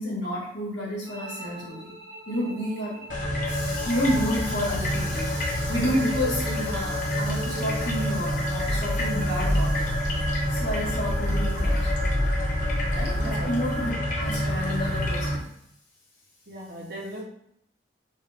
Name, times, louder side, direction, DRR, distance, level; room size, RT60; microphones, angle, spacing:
voice 1, 0.0-1.9 2.3-3.0 3.5-11.9 12.9-13.2 13.5-15.5, equal, 70° left, -5 dB, 1.7 m, -30 dB
sound 1, 1.0-8.0, right 2 dB, 85° right, 1.5 m, -42 dB
sound 2, 3.1-15.4, equal, 45° left, 0.9 m, -27 dB
voice 2, 13.1-13.6 16.5-17.2, equal, 60° right, -2 dB, 1.0 m, -37 dB
5.3 x 2.5 x 3.4 m, 0.73 s
head